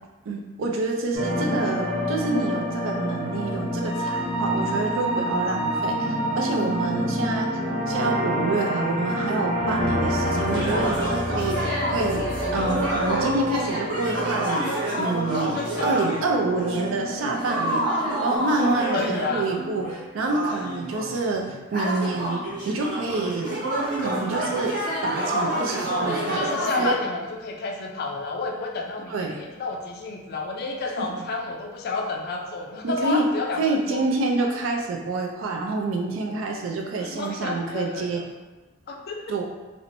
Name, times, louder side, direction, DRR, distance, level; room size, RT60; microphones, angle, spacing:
voice 1, 0.3-7.5 7.9-12.3 12.5-15.5 15.8-23.5 24.0-24.7 25.0-26.5 26.8-27.0 29.1-29.4 31.0-31.2 32.8-33.3 33.6-38.2 39.3-39.4, right 3 dB, 70° right, 1 dB, 0.4 m, -27 dB
sound 1, 1.1-18.4, equal, 85° right, 1.0 m, -28 dB
sound 2, 10.0-16.2 16.6-26.9, right 1 dB, 40° right, 0.9 m, -28 dB
voice 2, 15.3-15.9 17.7-17.8 18.9-19.5 26.3-34.1 34.4-34.5 37.0-38.2 38.9-39.3, left 3 dB, 50° left, 1 dB, 0.3 m, -30 dB
2.9 x 2.0 x 2.5 m, 1.2 s
head